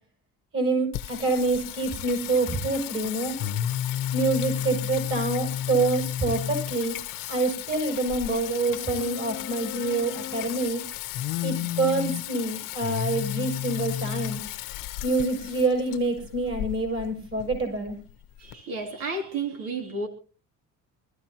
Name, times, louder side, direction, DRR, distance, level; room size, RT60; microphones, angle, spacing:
voice 1, 0.5-3.4 4.1-7.0 7.3-10.8 11.4-14.4 15.0-18.0, right 3 dB, 40° right, 7.6 m, -26 dB
Singing, 0.9-18.5, left 12 dB, 85° left, 1.1 m, -33 dB
voice 2, 18.4-20.1, right 3 dB, 80° right, 3.1 m, -32 dB
26.0 x 14.0 x 3.0 m
cardioid pair, 120°, 33 cm